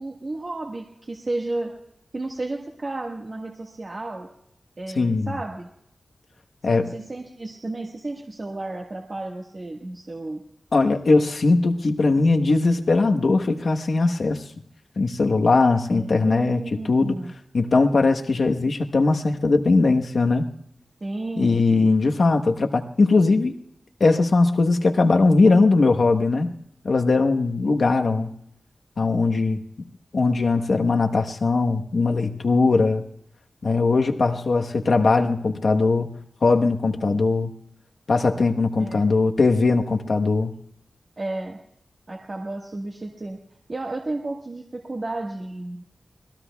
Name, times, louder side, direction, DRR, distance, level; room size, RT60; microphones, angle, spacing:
voice 1, 0.0-1.7 2.1-4.3 4.8-5.7 6.6-10.4 15.9-17.3 21.0-21.6 38.8-39.0 41.2-41.6 42.1-43.4 43.7-45.8, right 2 dB, 40° right, 0 dB, 1.5 m, -32 dB
voice 2, 5.0-5.3 6.6-6.9 10.7-14.4 15.0-17.1 17.5-20.4 21.4-23.5 24.0-26.5 26.8-28.3 29.0-29.9 30.1-33.0 33.6-36.1 36.4-37.5 38.1-40.5, left 3 dB, 65° left, 4 dB, 1.1 m, -20 dB
30.0 x 21.0 x 2.3 m, 0.75 s
wide cardioid pair, 120°, 0 cm